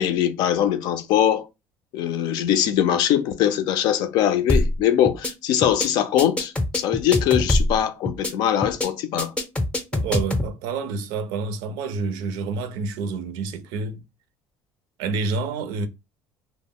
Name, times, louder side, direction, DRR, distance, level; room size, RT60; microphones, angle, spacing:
voice 1, 0.0-1.5 1.9-9.3, left 10 dB, 70° left, 0.4 m, -22 dB
sound 1, 4.5-4.8 5.1-5.3 5.6-5.9 6.2-7.8 8.1-8.3 8.6-8.9 9.2-10.5, left 1 dB, 15° left, 0.5 m, -23 dB
voice 2, 9.9-14.0 15.0-15.9, right 4 dB, 80° right, 0.5 m, -28 dB
2.0 x 2.0 x 3.5 m
supercardioid pair, 95°, 7 cm